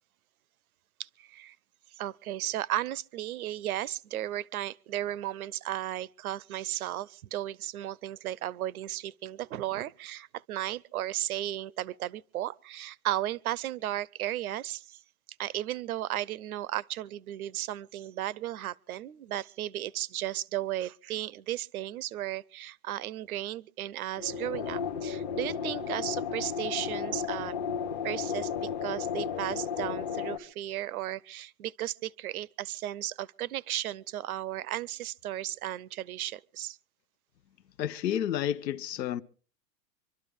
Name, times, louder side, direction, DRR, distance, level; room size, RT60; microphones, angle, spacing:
voice 1, 1.0-1.6 1.9-15.0 15.4-27.5 28.0-36.8, right 13 dB, 60° right, 0.6 m, -35 dB
sound 1, 24.2-30.4, left 7 dB, 25° left, 0.8 m, -33 dB
voice 2, 37.8-39.2, left 10 dB, 85° left, 1.0 m, -30 dB
26.0 x 12.5 x 3.5 m
supercardioid pair, 180°, 49 cm